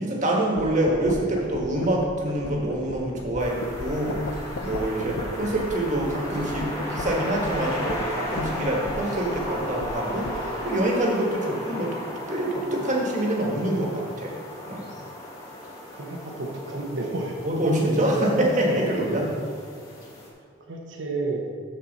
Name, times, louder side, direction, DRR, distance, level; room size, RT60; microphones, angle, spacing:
voice 1, 0.0-14.3 14.7-14.9 17.4-19.3, right 1 dB, 40° right, -1 dB, 1.4 m, -26 dB
sound 1, 0.6-10.6, left 2 dB, 75° left, 0.6 m, -38 dB
sound 2, 3.4-20.3, left 1 dB, 15° left, 1.3 m, -35 dB
voice 2, 15.9-17.4 17.9-18.4 18.7-18.9 20.7-21.5, right 2 dB, 70° right, 1 dB, 0.9 m, -32 dB
13.0 x 4.4 x 4.1 m, 2.1 s
head